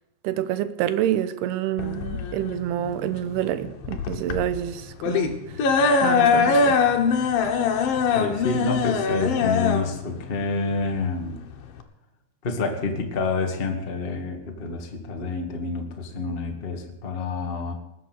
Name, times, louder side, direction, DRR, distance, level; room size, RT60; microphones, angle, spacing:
voice 1, 0.2-5.4 6.0-6.8, right 11 dB, 80° right, 2.9 m, -27 dB
sound 1, 1.8-11.8, left 5 dB, 65° left, 2.9 m, -23 dB
voice 2, 8.1-11.4 12.4-17.7, left 3 dB, 40° left, 0.7 m, -28 dB
20.0 x 8.2 x 8.1 m
omnidirectional pair, 4.7 m